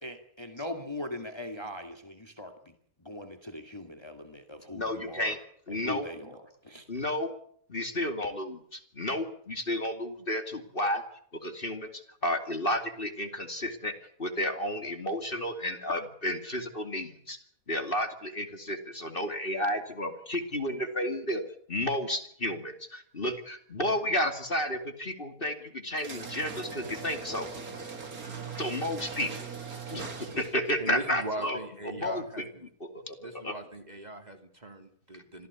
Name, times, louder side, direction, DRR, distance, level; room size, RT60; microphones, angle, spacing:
voice 1, 0.0-2.7 3.0-5.4 5.7-6.8, left 1 dB, 20° left, 6 dB, 2.2 m, -40 dB
voice 2, 4.7-5.4 5.7-6.1 6.9-7.3 7.7-11.0 11.4-13.9 14.2-17.4 17.7-21.4 21.7-27.5 28.5-29.3 29.9-31.6 31.9-32.4 32.8-33.5, left 1 dB, 40° left, 7 dB, 2.7 m, -32 dB
sound 1, 26.0-30.7, right 5 dB, 85° right, 3.1 m, -40 dB
voice 3, 30.8-32.7 33.2-35.5, right 2 dB, 30° right, 6 dB, 3.1 m, -39 dB
26.0 x 16.0 x 8.4 m, 0.64 s
omnidirectional pair, 1.5 m